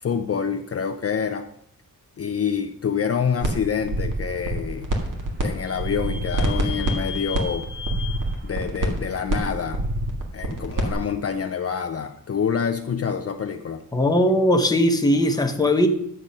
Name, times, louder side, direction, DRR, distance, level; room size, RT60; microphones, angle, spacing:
voice 1, 0.0-1.5 2.2-4.9 5.4-7.7 8.4-9.8 10.3-13.8, left 7 dB, 45° left, 5 dB, 0.6 m, -27 dB
sound 1, 3.4-3.5 3.8-5.4 5.7-10.9, right 1 dB, 65° right, 1.8 m, -26 dB
Vehicle / Squeak, 4.3-9.8, left 7 dB, 25° right, 1.6 m, -39 dB
voice 2, 13.9-15.9, left 1 dB, 10° left, 4 dB, 0.9 m, -19 dB
10.5 x 7.7 x 5.4 m, 0.72 s
wide cardioid pair, 165°, 34 cm